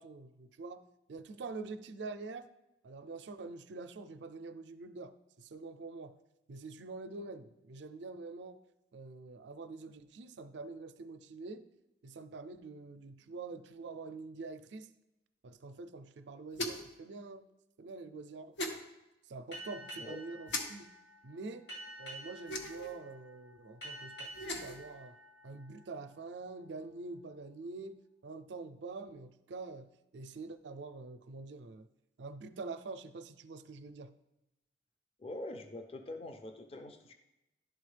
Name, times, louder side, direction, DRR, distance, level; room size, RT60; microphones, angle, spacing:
voice 1, 0.0-2.5 2.8-6.2 6.5-8.6 8.9-11.7 12.0-14.9 15.4-17.4 17.8-18.6 19.3-20.9 21.2-21.7 22.0-25.2 25.4-28.0 28.2-31.9 32.2-34.1, right 3 dB, 85° right, 0.4 m, -46 dB
sound 1, 16.5-17.0 18.6-18.8 20.5-20.6 22.5-22.9 24.3-24.8, left 1 dB, 85° left, 0.8 m, -37 dB
Boat Water vehicle, 19.5-26.6, right 1 dB, 70° left, 1.9 m, -50 dB
voice 2, 35.2-37.1, left 1 dB, 35° left, 0.4 m, -44 dB
11.5 x 3.9 x 3.3 m
head